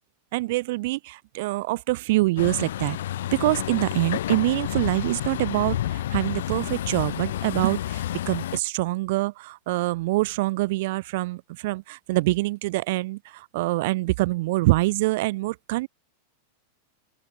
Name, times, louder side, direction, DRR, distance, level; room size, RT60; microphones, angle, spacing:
voice 1, 0.3-3.0 3.3-15.9, right 20 dB, 50° right, 0.7 m, -25 dB
Truck, 2.4-8.6, left 12 dB, 60° left, 3.7 m, -30 dB
open air
figure-of-eight pair, 90°, 0 cm